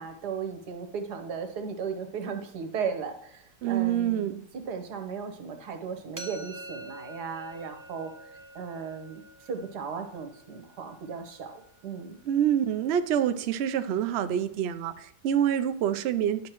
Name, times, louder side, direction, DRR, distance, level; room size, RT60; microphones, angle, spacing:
voice 1, 0.0-8.1 8.5-12.2, right 6 dB, 75° right, 6 dB, 1.6 m, -36 dB
voice 2, 3.6-4.4 12.2-16.5, right 10 dB, 90° right, 10 dB, 0.5 m, -26 dB
sound 1, 6.2-12.0, right 2 dB, 30° right, 0.3 m, -47 dB
10.5 x 6.2 x 3.0 m, 0.75 s
omnidirectional pair, 1.8 m